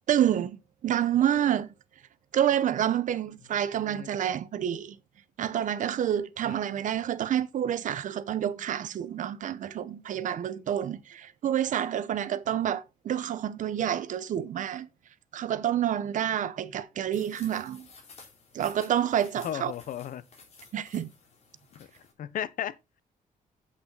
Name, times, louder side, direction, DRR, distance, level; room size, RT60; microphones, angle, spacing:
voice 1, 0.1-1.7 2.3-5.0 5.4-14.9 15.3-17.9 18.5-19.7 20.7-21.1, right 10 dB, 60° right, 0.8 m, -28 dB
sound 1, 17.1-22.1, left 4 dB, 45° left, 3.8 m, -53 dB
voice 2, 19.4-20.2 22.2-23.0, left 10 dB, 65° left, 0.8 m, -35 dB
8.4 x 8.3 x 3.9 m
wide cardioid pair, 165°, 15 cm